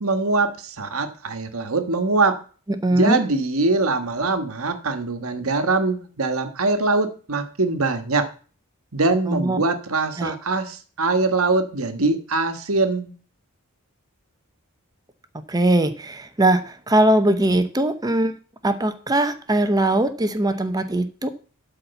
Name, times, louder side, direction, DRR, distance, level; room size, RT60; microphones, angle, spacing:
voice 1, 0.0-2.4 2.9-8.3 8.9-13.1, right 3 dB, 70° right, 1.3 m, -22 dB
voice 2, 2.7-3.2 9.3-9.6 10.2-10.3 15.5-18.4 18.6-21.3, right 1 dB, 15° right, 0.7 m, -21 dB
12.0 x 4.3 x 6.8 m
head